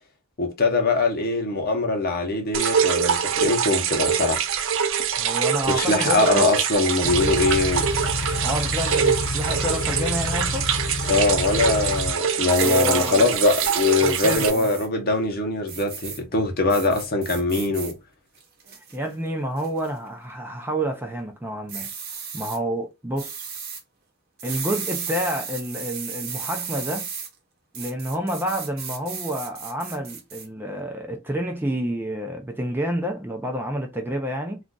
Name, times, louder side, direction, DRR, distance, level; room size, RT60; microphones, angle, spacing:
voice 1, 0.4-4.4 5.7-7.9 11.1-18.0, left 3 dB, 45° left, 0.8 m, -22 dB
sound 1, 2.5-14.5, right 8 dB, 65° right, 0.4 m, -24 dB
voice 2, 5.1-6.5 8.4-10.7 12.6-13.3 14.0-14.7 18.9-21.9 22.3-23.4 24.4-27.1 27.7-34.6, equal, 10° right, 0.5 m, -29 dB
Car / Idling, 7.0-12.1, left 3 dB, 85° left, 0.5 m, -29 dB
sound 2, 12.4-14.9 15.7-16.2 16.7-17.9 18.4-19.0 19.6-19.9 21.7-22.6 23.2-23.8 24.4-27.3 27.7-30.5, right 6 dB, 45° right, 0.9 m, -34 dB
2.4 x 2.4 x 3.8 m
head